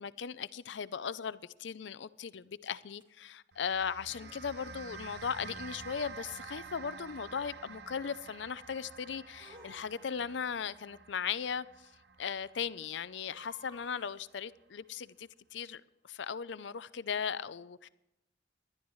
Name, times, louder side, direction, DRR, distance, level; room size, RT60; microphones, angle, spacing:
voice 1, 0.0-11.9 12.2-17.9, left 7 dB, 70° left, 0.5 m, -38 dB
sound 1, 3.0-3.1 4.0-4.7 5.9-6.7 9.3-10.4 13.3-14.4, right 1 dB, 25° right, 1.9 m, -57 dB
sound 2, 3.5-14.1, right 5 dB, 60° right, 0.7 m, -50 dB
20.0 x 12.0 x 3.1 m
head